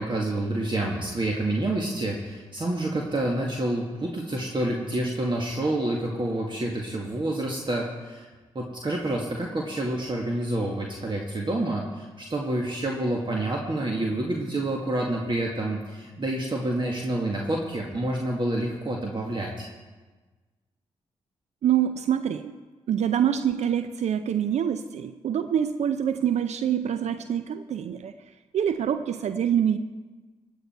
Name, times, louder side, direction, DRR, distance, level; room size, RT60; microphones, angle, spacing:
voice 1, 0.0-8.3 8.5-19.7, right 1 dB, 40° right, -1 dB, 2.1 m, -28 dB
voice 2, 21.6-22.5 22.9-28.1 28.5-29.8, right 9 dB, 65° right, 11 dB, 0.5 m, -25 dB
16.5 x 9.9 x 4.5 m, 1.3 s
hypercardioid pair, 40°, 12 cm